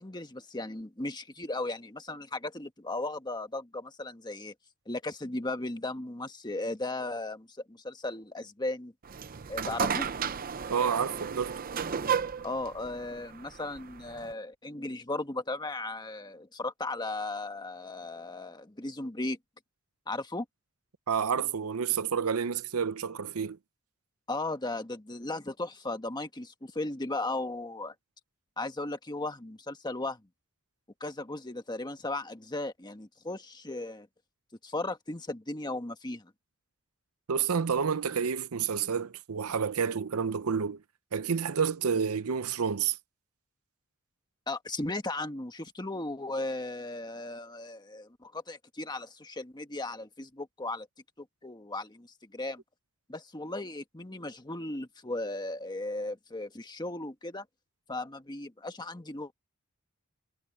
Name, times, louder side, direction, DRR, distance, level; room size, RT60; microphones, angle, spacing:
voice 1, 0.0-4.5 4.9-8.9 9.5-10.1 12.4-19.4 20.1-20.4 24.3-27.9 28.6-30.2 31.0-34.1 34.6-36.3 44.5-50.9 51.2-52.6 53.1-57.4 57.9-59.3, left 2 dB, 20° left, 1.5 m, -36 dB
sound 1, 9.0-14.3, right 7 dB, 40° right, 0.7 m, -33 dB
voice 2, 10.7-11.6 21.1-23.6 37.3-40.8 41.1-43.0, right 6 dB, 85° right, 0.7 m, -29 dB
head